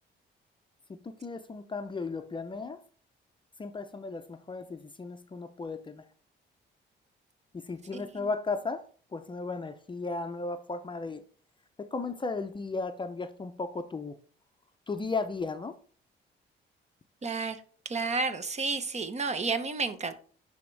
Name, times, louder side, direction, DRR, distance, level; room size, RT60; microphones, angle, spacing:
voice 1, 1.0-2.8 3.6-6.0 7.5-8.8 9.1-11.2 11.8-14.2 14.9-15.8, left 3 dB, 25° left, 0.5 m, -35 dB
voice 2, 7.9-8.3 17.2-17.6 17.8-20.1, right 4 dB, 35° right, 0.8 m, -31 dB
9.9 x 3.5 x 3.3 m
cardioid pair, 90°, 20 cm